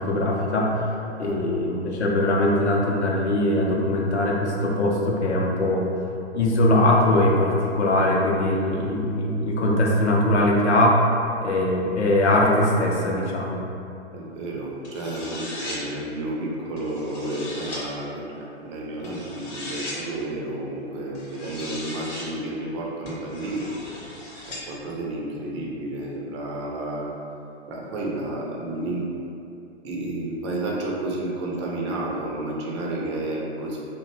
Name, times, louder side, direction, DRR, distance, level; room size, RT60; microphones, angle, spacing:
voice 1, 0.0-0.9 1.2-5.9 6.3-11.0 11.4-13.6, left 1 dB, 80° left, -2 dB, 0.6 m, -21 dB
voice 2, 1.1-1.6 14.1-23.7 24.4-27.1 27.7-29.1 29.8-33.8, right 1 dB, 30° right, -3 dB, 0.4 m, -31 dB
sound 1, 14.8-15.8 16.8-17.8 19.0-20.0 21.1-22.3 23.0-24.6, left 1 dB, 30° left, 0.6 m, -37 dB
2.5 x 2.2 x 2.9 m, 2.7 s
figure-of-eight pair, 115°, 34 cm